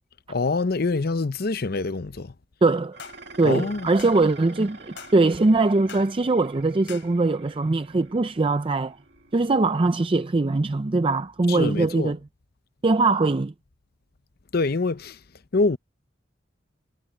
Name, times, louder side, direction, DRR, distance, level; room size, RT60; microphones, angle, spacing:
voice 1, 0.3-2.3 3.4-3.9 11.5-12.1 14.5-15.2 15.5-15.8, left 3 dB, 55° left, 0.7 m, -25 dB
voice 2, 2.6-3.0 3.4-9.0 9.3-12.2 12.8-13.5, right 3 dB, 30° right, 0.5 m, -21 dB
Dishes pots and pans, 2.9-11.7, right 3 dB, 60° right, 2.1 m, -48 dB
sound 1, 3.0-3.2 4.0-4.2 5.0-5.2 5.9-6.1 6.9-7.1, left 7 dB, 70° left, 3.7 m, -42 dB
head